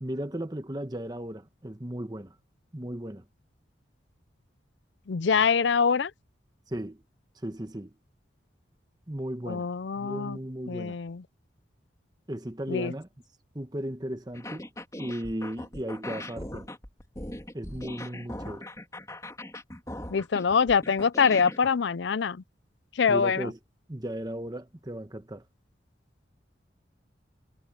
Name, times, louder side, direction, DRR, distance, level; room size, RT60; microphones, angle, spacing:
voice 1, 0.0-2.3 2.7-3.2 6.7-7.0 7.4-7.9 9.1-9.7 10.0-11.0 12.3-13.1 13.5-14.7 15.0-16.7 17.5-18.7 23.1-23.6 23.9-25.4, right 1 dB, 20° right, 1.1 m, -35 dB
voice 2, 5.1-6.1 9.5-10.4 10.7-11.2 12.7-12.9 20.1-22.4 23.0-23.5, left 6 dB, 70° left, 0.5 m, -24 dB
sound 1, 14.3-21.7, left 1 dB, 15° left, 3.3 m, -40 dB
head